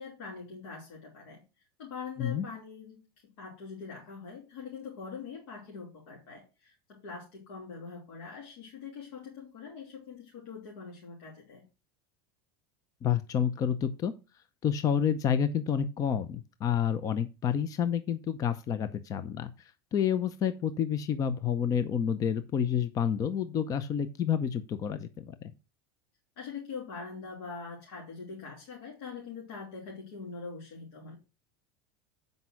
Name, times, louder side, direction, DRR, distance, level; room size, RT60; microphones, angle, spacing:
voice 1, 0.0-1.4 1.8-11.6 26.4-31.2, left 5 dB, 80° left, -3 dB, 3.2 m, -43 dB
voice 2, 13.0-14.1 14.6-19.5 19.9-25.4, left 8 dB, 25° left, 12 dB, 0.6 m, -29 dB
7.9 x 5.4 x 5.8 m, 0.29 s
supercardioid pair, 150°, 13 cm